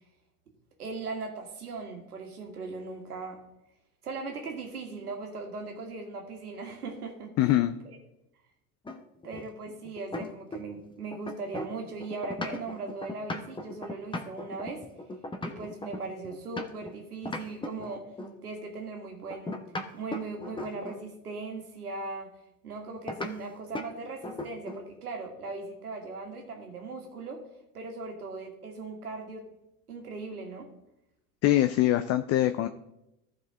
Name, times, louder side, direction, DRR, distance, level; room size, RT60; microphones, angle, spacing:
voice 1, 0.8-3.4 4.0-7.3 7.8-8.0 9.2-14.9 15.4-18.1 18.4-19.6 19.9-22.3 22.6-27.4 27.7-29.5 29.9-30.7, right 3 dB, 90° right, 2 dB, 1.7 m, -39 dB
voice 2, 7.4-7.8 31.4-32.7, left 14 dB, 35° left, 10 dB, 0.5 m, -23 dB
sound 1, 8.9-10.8 11.1-16.9 17.3-18.4 19.3-21.1 23.1-23.3 23.8-23.9 24.2-24.9, left 1 dB, 10° left, 1.0 m, -38 dB
14.5 x 5.0 x 3.6 m, 0.88 s
hypercardioid pair, 80°, 44 cm